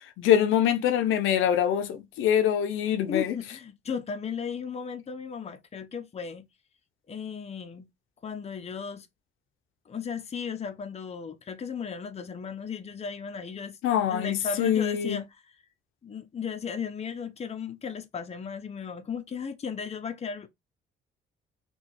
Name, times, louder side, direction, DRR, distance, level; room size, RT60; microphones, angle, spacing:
voice 1, 0.2-3.4 13.8-15.2, left 10 dB, 85° left, 0.5 m, -24 dB
voice 2, 3.1-6.5 7.1-7.9 8.2-9.1 9.9-15.3 16.0-20.5, left 6 dB, 30° left, 0.6 m, -35 dB
2.8 x 2.3 x 4.0 m
cardioid pair, 90°, 20 cm